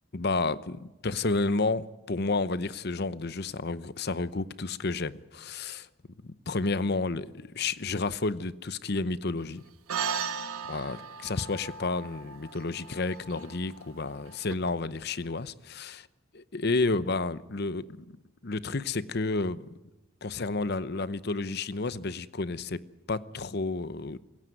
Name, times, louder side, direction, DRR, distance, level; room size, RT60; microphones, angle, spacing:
voice 1, 0.1-5.9 6.2-9.6 10.7-16.1 16.3-18.0 18.4-19.7 20.2-22.8 23.1-24.3, left 3 dB, 50° left, 0.8 m, -31 dB
sound 1, 9.9-14.6, right 6 dB, 85° right, 1.2 m, -37 dB
24.5 x 16.5 x 9.4 m
head